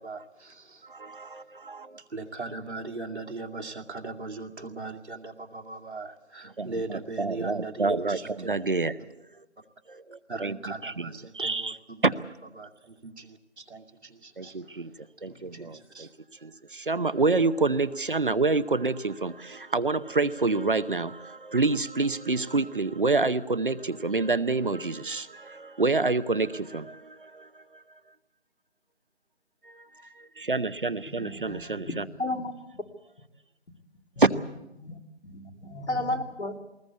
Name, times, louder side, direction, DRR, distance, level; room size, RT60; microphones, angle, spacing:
voice 1, 0.0-0.9 2.0-8.5 9.0-9.1 10.3-12.1 12.6-14.5 15.2-16.1, right 3 dB, 70° right, 1 dB, 2.4 m, -39 dB
voice 2, 0.8-2.0 6.6-8.9 9.4-9.5 9.9-10.6 10.8-11.1 11.3-11.8 12.0-12.1 14.4-14.9 15.2-16.1 16.4-27.8 29.6-29.9 30.2-32.0 34.2-34.3, right 3 dB, 50° right, 15 dB, 0.8 m, -27 dB
voice 3, 31.1-32.8 34.8-35.0 35.2-36.6, left 1 dB, 80° left, 4 dB, 3.0 m, -33 dB
20.0 x 19.5 x 8.3 m, 0.93 s
figure-of-eight pair, 175°, 34 cm